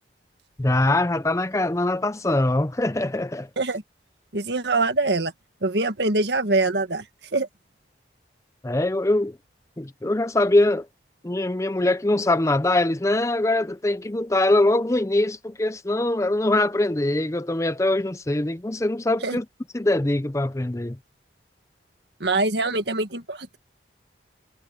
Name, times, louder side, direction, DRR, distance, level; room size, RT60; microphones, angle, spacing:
voice 1, 0.6-3.5 8.6-9.4 9.8-10.9 11.2-19.5 19.7-21.0, left 2 dB, 15° left, 0.5 m, -22 dB
voice 2, 4.3-5.3 5.6-7.0 7.3-7.5 19.2-19.4 22.2-23.6, right 2 dB, 65° right, 1.7 m, -23 dB
head